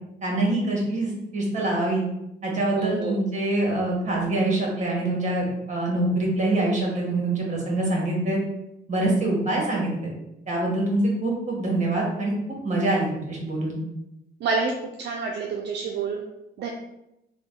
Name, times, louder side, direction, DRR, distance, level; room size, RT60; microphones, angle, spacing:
voice 1, 0.2-2.1 2.4-8.4 8.9-10.1 10.5-12.3 12.6-13.8, right 2 dB, 35° right, -2 dB, 1.4 m, -25 dB
voice 2, 2.7-3.2 14.4-14.7 15.0-16.2 16.6-16.7, right 4 dB, 60° right, 1 dB, 0.5 m, -27 dB
3.4 x 2.2 x 3.7 m, 0.88 s
cardioid pair, 90°, 20 cm